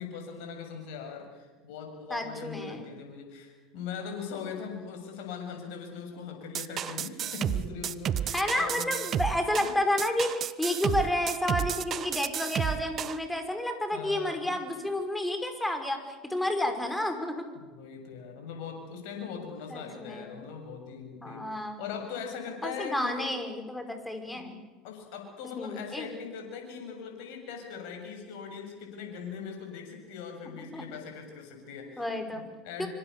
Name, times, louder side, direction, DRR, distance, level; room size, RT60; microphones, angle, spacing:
voice 1, 0.0-8.9 9.3-9.7 13.9-14.5 17.6-23.3 24.3-24.5 24.8-32.9, left 6 dB, 65° left, 3 dB, 7.4 m, -41 dB
voice 2, 2.1-2.8 8.3-17.4 19.7-20.3 21.2-21.8 22.6-24.6 25.6-26.1 30.6-30.9 32.0-32.4 32.8-32.9, left 1 dB, 5° left, 6 dB, 5.6 m, -30 dB
sound 1, 6.5-13.2, right 10 dB, 40° right, 1.0 m, -31 dB
25.5 x 25.5 x 7.1 m, 1.2 s
hypercardioid pair, 75°, 0 cm